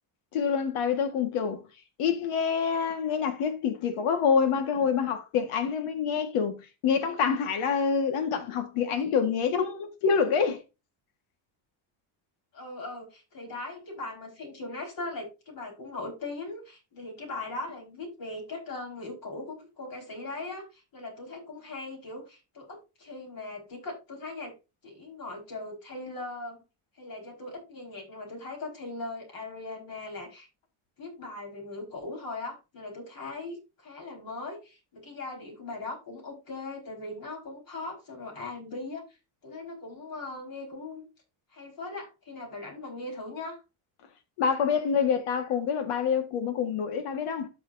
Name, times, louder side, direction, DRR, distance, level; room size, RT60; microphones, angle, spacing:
voice 1, 0.3-1.6 2.0-10.6 44.4-47.5, left 6 dB, 85° left, 1.8 m, -26 dB
voice 2, 12.5-24.6 24.8-26.6 26.9-30.5 31.0-39.2 39.4-41.0 41.5-43.6, left 2 dB, 45° left, 4.9 m, -39 dB
13.0 x 5.6 x 2.7 m
cardioid pair, 145°, 50 cm